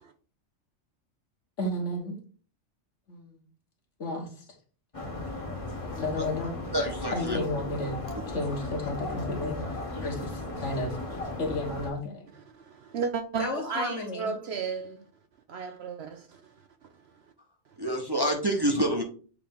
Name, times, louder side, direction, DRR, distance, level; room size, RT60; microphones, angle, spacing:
voice 1, 1.6-2.2 3.1-3.4 4.0-4.4 5.8-6.5 7.1-8.0 8.3-9.6 10.0-11.0 11.4-12.3 13.4-14.4, left 2 dB, 65° left, 1.6 m, -32 dB
sound 1, 4.9-11.9, left 2 dB, 25° left, 1.2 m, -36 dB
voice 2, 6.7-7.4 17.8-19.0, right 1 dB, 20° right, 0.9 m, -27 dB
voice 3, 12.3-15.1 15.5-16.5, right 5 dB, 60° right, 0.7 m, -34 dB
7.8 x 3.3 x 3.7 m
omnidirectional pair, 1.4 m